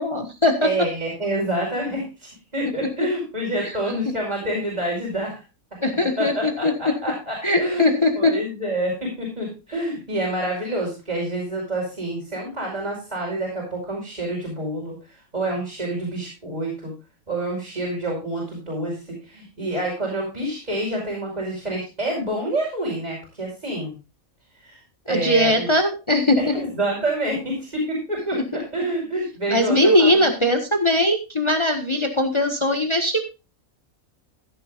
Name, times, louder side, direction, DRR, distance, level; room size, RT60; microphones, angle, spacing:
voice 1, 0.0-0.7 3.6-3.7 5.8-6.7 7.4-8.3 25.1-26.5 28.3-28.6 29.5-33.2, left 1 dB, 20° left, 5 dB, 1.6 m, -20 dB
voice 2, 0.6-5.3 6.2-7.9 8.2-16.9 17.3-23.9 24.6-24.8 25.1-25.7 26.4-30.3, right 1 dB, 30° right, -4 dB, 5.3 m, -27 dB
15.5 x 10.5 x 2.5 m, 0.29 s
omnidirectional pair, 1.5 m